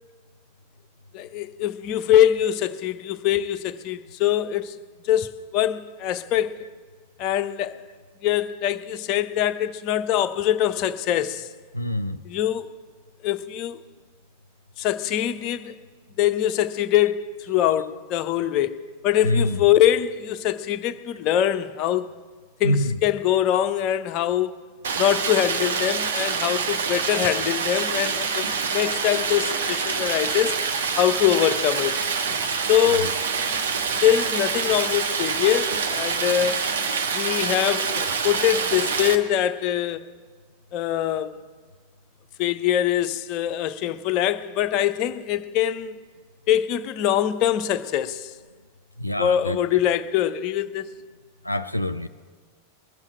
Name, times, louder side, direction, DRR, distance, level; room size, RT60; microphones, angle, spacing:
voice 1, 1.1-4.8 5.0-6.7 7.2-7.8 8.2-11.5 12.3-12.7 13.2-13.8 14.8-15.7 16.2-18.8 19.0-22.1 22.6-24.6 25.0-30.6 31.0-32.0 32.7-33.1 34.0-36.7 37.1-40.0 40.7-41.4 42.4-46.0 46.5-48.3 49.2-50.9, left 11 dB, 40° left, 0.6 m, -23 dB
voice 2, 11.7-12.2 19.2-19.6 22.6-23.0 33.0-33.1 49.0-49.6 51.4-52.1, left 1 dB, 90° left, 0.4 m, -25 dB
Stream, 24.8-39.2, right 5 dB, 65° right, 1.0 m, -26 dB
20.5 x 7.3 x 8.8 m
figure-of-eight pair, 90°, 0 cm